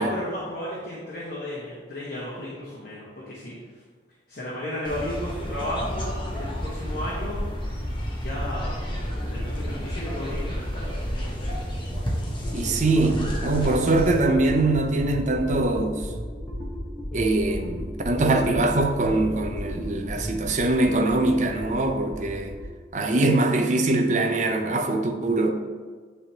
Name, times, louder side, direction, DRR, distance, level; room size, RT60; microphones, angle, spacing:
voice 1, 0.0-3.5 4.3-7.4 8.2-8.9 9.3-11.0, left 1 dB, 55° left, -7 dB, 1.3 m, -34 dB
sound 1, 4.8-14.2, equal, 30° left, 1.0 m, -32 dB
sound 2, 5.4-22.7, equal, 5° left, 1.3 m, -35 dB
voice 2, 12.5-16.0 17.1-22.5 22.9-25.5, right 2 dB, 45° right, 4 dB, 0.6 m, -23 dB
9.7 x 3.5 x 2.9 m, 1.5 s
head